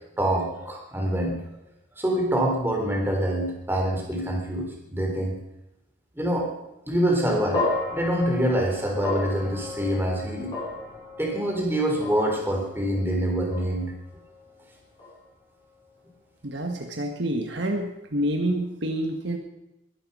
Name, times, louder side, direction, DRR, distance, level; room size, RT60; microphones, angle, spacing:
voice 1, 0.2-1.4 2.0-5.4 6.2-6.5 6.9-7.7 7.9-10.5 11.2-13.9, right 1 dB, 10° right, 0 dB, 3.6 m, -25 dB
sound 1, 7.5-15.9, left 2 dB, 25° left, 6.3 m, -34 dB
voice 2, 16.4-19.4, right 1 dB, 60° right, 3 dB, 1.6 m, -28 dB
21.5 x 11.0 x 5.6 m, 0.91 s
head